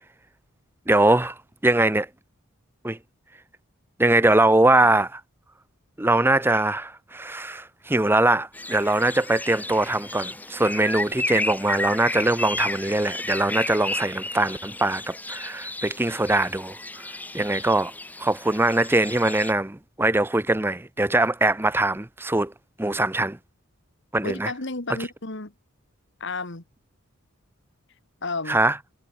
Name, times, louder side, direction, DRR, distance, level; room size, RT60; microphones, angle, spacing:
voice 1, 0.9-1.4 1.6-2.1 2.8-3.0 4.0-5.2 6.0-16.8 17.3-17.9 18.2-22.5 22.8-23.4 24.1-24.5 28.5-28.8, right 2 dB, 10° right, 0.7 m, -22 dB
sound 1, 8.5-19.5, left 2 dB, 10° left, 2.1 m, -33 dB
voice 2, 24.2-25.5 26.2-26.6 28.2-28.6, left 3 dB, 60° left, 1.9 m, -32 dB
head